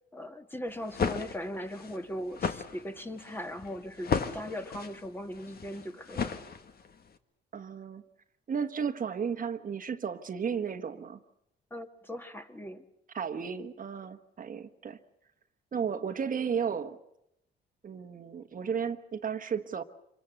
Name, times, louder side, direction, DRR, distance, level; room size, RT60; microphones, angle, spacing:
voice 1, 0.1-6.4 11.7-12.8, equal, 10° left, 6 dB, 1.8 m, -39 dB
sound 1, 0.7-7.0, left 6 dB, 50° left, 1.7 m, -35 dB
voice 2, 7.5-8.0 8.5-11.2 13.1-15.0 15.7-17.0 17.8-19.8, right 7 dB, 45° right, 8 dB, 1.3 m, -34 dB
26.5 x 23.5 x 7.0 m, 0.80 s
cardioid pair, 90°, 20 cm